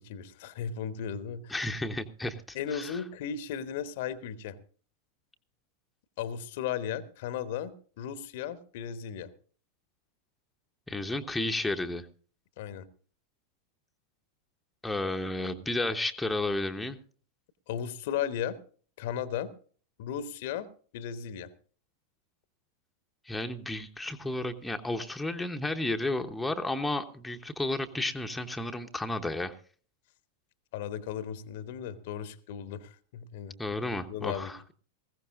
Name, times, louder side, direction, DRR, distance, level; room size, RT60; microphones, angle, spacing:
voice 1, 0.0-1.5 2.5-4.6 6.2-9.3 12.6-12.9 17.7-18.6 19.0-19.5 20.0-21.5 30.7-33.5 34.1-34.5, left 8 dB, 50° left, 14 dB, 1.0 m, -36 dB
voice 2, 1.5-3.0 10.9-12.1 14.8-17.0 23.3-29.5 33.6-34.6, left 2 dB, 5° left, 4 dB, 1.0 m, -32 dB
19.5 x 16.0 x 2.5 m, 0.43 s
figure-of-eight pair, 90°, 0 cm